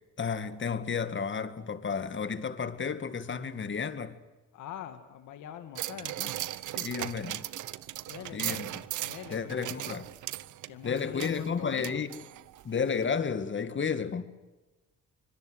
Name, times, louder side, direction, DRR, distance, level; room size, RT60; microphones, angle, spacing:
voice 1, 0.2-4.2 6.8-7.4 8.3-8.7 9.3-10.1 10.8-12.1 12.6-14.2, left 6 dB, 40° left, 2.0 m, -32 dB
voice 2, 4.5-6.3 8.1-8.7 9.0-9.9 10.7-12.0, left 10 dB, 85° left, 2.4 m, -43 dB
sound 1, 5.8-12.6 13.0-13.1, right 14 dB, 75° right, 1.0 m, -38 dB
25.5 x 22.0 x 8.0 m
cardioid pair, 90°, 30 cm